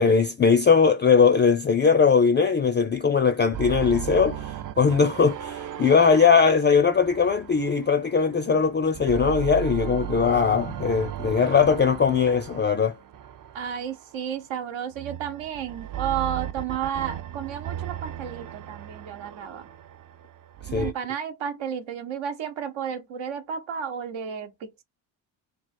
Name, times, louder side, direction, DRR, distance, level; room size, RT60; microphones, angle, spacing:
voice 1, 0.0-12.9 20.7-20.9, left 5 dB, 25° left, 0.4 m, -20 dB
sound 1, 3.5-8.5 8.8-14.2 14.9-20.9, right 11 dB, 45° right, 0.5 m, -36 dB
voice 2, 13.5-19.7 20.7-24.8, right 8 dB, 75° right, 1.0 m, -32 dB
3.1 x 2.4 x 4.1 m
cardioid pair, 105°, 47 cm